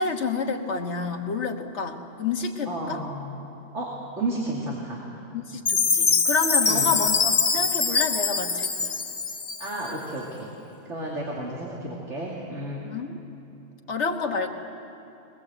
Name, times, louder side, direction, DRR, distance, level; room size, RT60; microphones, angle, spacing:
voice 1, 0.0-3.0 5.3-8.9 12.8-13.2 13.9-14.5, left 4 dB, 65° left, 3 dB, 1.7 m, -29 dB
voice 2, 2.6-3.9 4.2-5.0 6.6-6.9 9.6-10.5 10.8-12.8, right 1 dB, 70° right, -4 dB, 3.0 m, -32 dB
Chime, 5.7-9.9, left 4 dB, 35° left, 0.9 m, -23 dB
22.0 x 20.5 x 7.9 m, 2.9 s
omnidirectional pair, 1.3 m